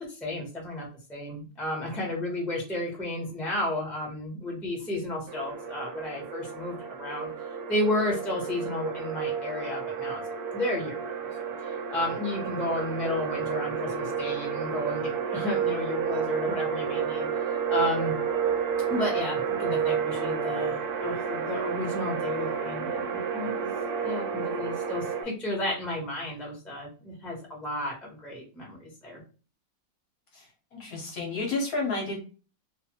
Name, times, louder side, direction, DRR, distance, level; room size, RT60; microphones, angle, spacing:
voice 1, 0.1-7.3 7.7-10.2 10.5-11.0 11.6-17.3 17.7-18.1 18.9-23.5 24.0-29.2, left 1 dB, ahead, -2 dB, 0.6 m, -32 dB
sound 1, 5.3-25.2, right 7 dB, 70° right, 0.9 m, -31 dB
voice 2, 30.7-32.3, left 3 dB, 60° left, 0 dB, 1.0 m, -31 dB
2.6 x 2.5 x 2.7 m, 0.35 s
omnidirectional pair, 2.0 m